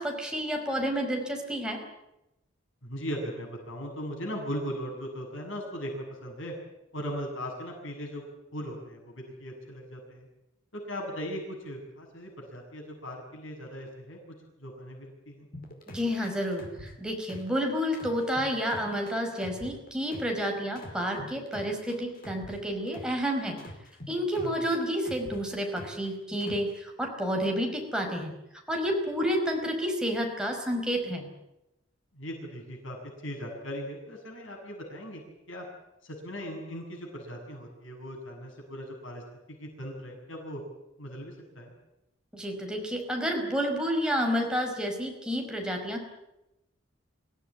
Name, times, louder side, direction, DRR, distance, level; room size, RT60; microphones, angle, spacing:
voice 1, 0.0-1.8 15.9-23.6 24.1-28.3 28.7-31.3 42.3-46.1, equal, 5° right, 1 dB, 5.2 m, -30 dB
voice 2, 2.8-6.5 6.9-8.2 8.5-10.3 10.7-14.2 14.6-15.5 24.4-24.5 32.1-33.0 33.2-35.2 35.5-35.7 36.0-39.2 39.5-40.6 41.0-41.7, equal, 80° left, 1 dB, 7.2 m, -38 dB
sound 1, 15.5-17.6 17.9-20.4 20.8-23.2 23.6-26.1 26.4-26.8, left 1 dB, 50° left, 5.1 m, -45 dB
25.0 x 17.0 x 9.9 m, 0.90 s
head